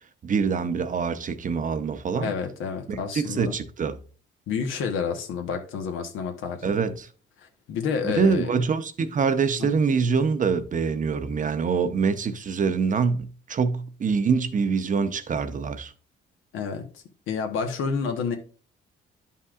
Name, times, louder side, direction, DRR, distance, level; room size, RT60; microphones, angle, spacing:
voice 1, 0.2-2.3 2.9-4.0 6.6-7.1 8.0-15.9, right 5 dB, 40° right, 0.7 m, -25 dB
voice 2, 2.2-3.5 4.5-6.9 7.4-8.5 9.6-9.8 16.5-18.4, left 6 dB, 90° left, 1.1 m, -29 dB
10.5 x 5.6 x 2.4 m
cardioid pair, 90°, 20 cm